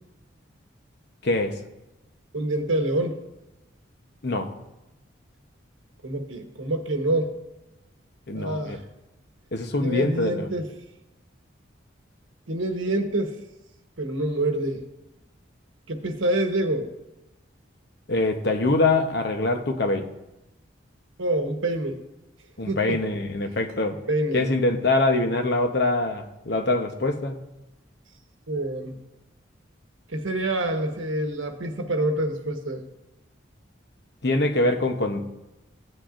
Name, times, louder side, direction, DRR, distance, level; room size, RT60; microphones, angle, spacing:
voice 1, 1.2-1.6 4.2-4.5 8.3-8.8 9.5-10.5 18.1-20.1 22.6-24.0 24.3-27.4 34.2-35.3, left 2 dB, 55° left, 5 dB, 0.9 m, -24 dB
voice 2, 2.3-3.2 6.0-7.3 8.3-8.8 9.8-10.7 12.5-13.4 14.0-14.8 15.9-16.9 21.2-22.0 22.7-23.0 24.1-24.4 28.5-29.0 30.1-32.8, right 1 dB, 80° right, 5 dB, 1.2 m, -26 dB
16.0 x 8.6 x 2.6 m, 0.97 s
head